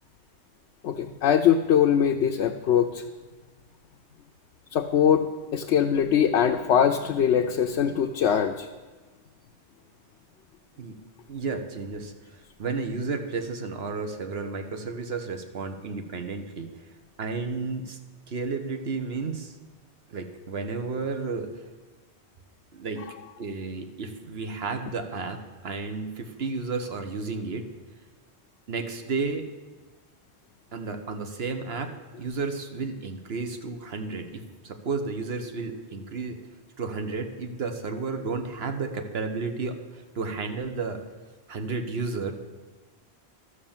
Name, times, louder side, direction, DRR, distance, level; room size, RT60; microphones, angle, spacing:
voice 1, 0.8-3.0 4.7-8.7, left 8 dB, 85° left, 4 dB, 0.9 m, -22 dB
voice 2, 11.3-16.7 17.2-18.0 18.3-19.5 20.1-21.5 22.7-23.0 23.4-27.7 28.7-29.5 30.7-36.4 36.8-41.0 41.5-42.3, right 4 dB, 65° right, 6 dB, 1.3 m, -32 dB
12.5 x 6.6 x 7.3 m, 1.3 s
omnidirectional pair, 1.1 m